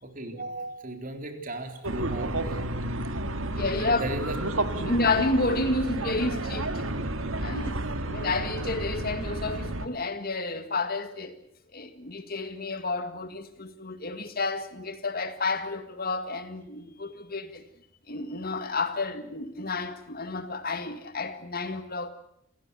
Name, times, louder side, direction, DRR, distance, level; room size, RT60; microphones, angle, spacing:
voice 1, 0.0-2.7 4.0-4.4, right 1 dB, 40° right, 4.0 m, -36 dB
sound 1, 1.8-9.9, right 2 dB, 85° right, 2.0 m, -31 dB
voice 2, 3.6-4.0 4.8-6.9 7.4-11.3 11.7-17.6 18.1-22.1, left 3 dB, 50° left, 2.0 m, -30 dB
29.0 x 16.0 x 8.3 m
head